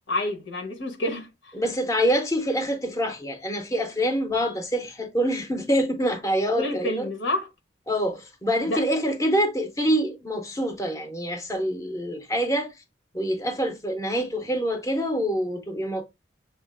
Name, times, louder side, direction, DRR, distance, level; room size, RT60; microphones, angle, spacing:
voice 1, 0.1-1.5 6.6-7.5 8.7-8.8, left 1 dB, 80° left, 1.0 m, -28 dB
voice 2, 1.5-7.1 7.9-12.8 13.1-16.0, equal, 15° left, 0.6 m, -26 dB
6.4 x 2.5 x 2.4 m
head